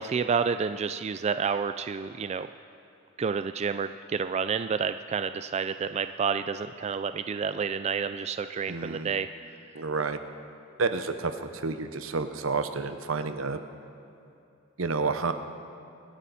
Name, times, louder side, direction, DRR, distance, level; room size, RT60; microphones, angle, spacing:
voice 1, 0.0-2.5 3.2-9.3, right 6 dB, 30° right, 10 dB, 0.3 m, -29 dB
voice 2, 8.7-9.1 9.7-10.2 10.8-13.6 14.8-15.3, right 4 dB, 80° right, 9 dB, 0.9 m, -30 dB
25.5 x 9.8 x 4.2 m, 2.7 s
head